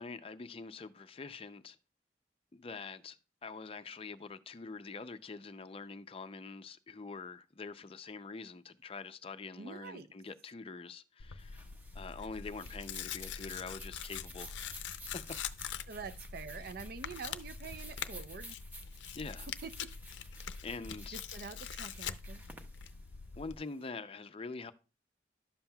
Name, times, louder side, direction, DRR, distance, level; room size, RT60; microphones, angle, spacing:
voice 1, 0.0-1.8 2.5-3.2 3.4-11.7 11.9-14.7 15.1-15.2 19.1-19.5 20.6-21.2 23.4-24.7, left 4 dB, 30° left, 0.5 m, -45 dB
voice 2, 9.6-10.1 15.9-18.6 19.6-19.9 21.1-22.4, right 5 dB, 55° right, 0.5 m, -46 dB
Tearing, 11.2-23.6, left 7 dB, 90° left, 0.5 m, -44 dB
sound 1, 11.4-23.8, right 1 dB, 10° right, 0.8 m, -54 dB
11.0 x 7.2 x 2.3 m
head